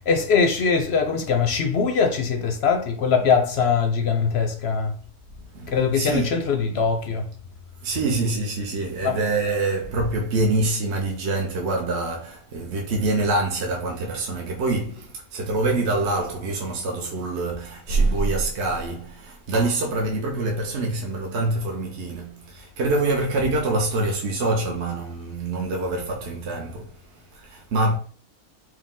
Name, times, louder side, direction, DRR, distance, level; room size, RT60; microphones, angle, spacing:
voice 1, 0.1-4.9 5.7-7.3 9.0-9.2, left 5 dB, 60° left, 0.7 m, -22 dB
voice 2, 5.5-6.4 7.8-26.9 27.3-28.0, right 2 dB, 55° right, 0.9 m, -25 dB
4.6 x 2.2 x 3.6 m
omnidirectional pair, 1.6 m